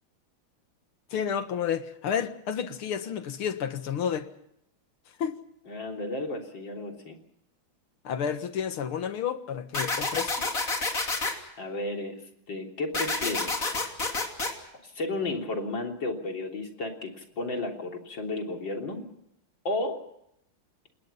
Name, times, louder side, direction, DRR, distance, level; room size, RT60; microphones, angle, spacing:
voice 1, 1.1-4.3 5.2-5.4 8.0-10.6, left 8 dB, 90° left, 2.4 m, -31 dB
voice 2, 5.7-7.2 11.6-12.2 12.5-13.9 14.8-19.1 19.6-20.0, left 2 dB, 60° left, 4.2 m, -33 dB
sound 1, 9.7-11.3 12.9-14.5, left 3 dB, 40° left, 3.3 m, -29 dB
28.0 x 20.5 x 5.7 m
omnidirectional pair, 2.3 m